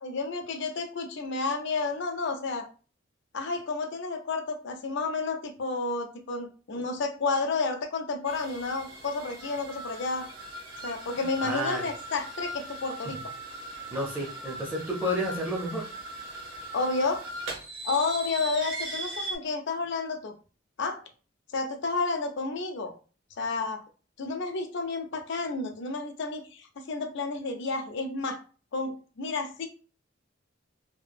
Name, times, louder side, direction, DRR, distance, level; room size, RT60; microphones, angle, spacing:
voice 1, 0.0-2.6 3.3-10.3 10.8-13.2 16.7-17.2 17.8-20.3 20.8-21.0 21.5-22.9 23.4-23.8 24.2-28.4 28.7-29.7, left 3 dB, 65° left, 6 dB, 0.5 m, -31 dB
sound 1, 8.3-19.4, right 1 dB, 70° right, 1.0 m, -39 dB
voice 2, 11.2-11.9 13.9-15.9, equal, 10° right, -2 dB, 0.5 m, -31 dB
2.8 x 2.2 x 2.5 m, 0.37 s
head